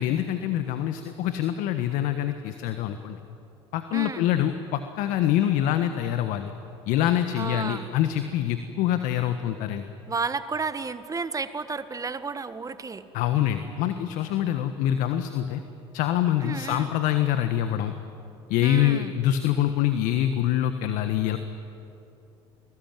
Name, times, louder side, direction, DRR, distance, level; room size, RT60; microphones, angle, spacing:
voice 1, 0.0-3.2 3.7-6.5 6.9-9.9 13.1-15.6 15.9-17.9 18.5-21.4, left 11 dB, 65° left, 9 dB, 1.4 m, -25 dB
voice 2, 3.9-4.2 7.4-7.9 10.1-13.0 16.4-16.9 18.6-19.1, right 4 dB, 25° right, 11 dB, 1.5 m, -32 dB
29.0 x 20.5 x 9.3 m, 2.9 s
hypercardioid pair, 70°, 14 cm